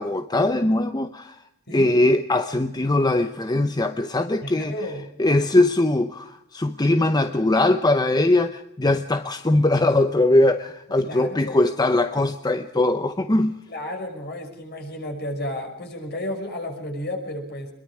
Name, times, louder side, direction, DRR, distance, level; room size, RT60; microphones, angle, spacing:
voice 1, 0.0-1.4 1.7-4.7 5.2-13.6, left 2 dB, 20° left, 0.8 m, -21 dB
voice 2, 4.4-5.0 10.9-11.6 13.7-17.7, left 1 dB, 50° left, 5.9 m, -32 dB
25.0 x 22.0 x 4.9 m
head